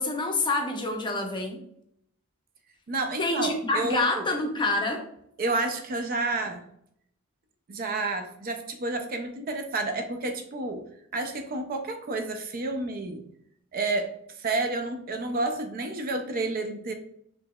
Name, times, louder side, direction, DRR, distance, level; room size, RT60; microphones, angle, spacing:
voice 1, 0.0-1.6 3.2-5.0, left 2 dB, 20° left, 2 dB, 0.6 m, -27 dB
voice 2, 2.9-4.3 5.4-6.6 7.7-10.8 11.1-13.2 13.7-14.1 14.4-16.9, right 2 dB, 40° right, 5 dB, 0.4 m, -30 dB
4.9 x 2.8 x 2.3 m, 0.72 s
head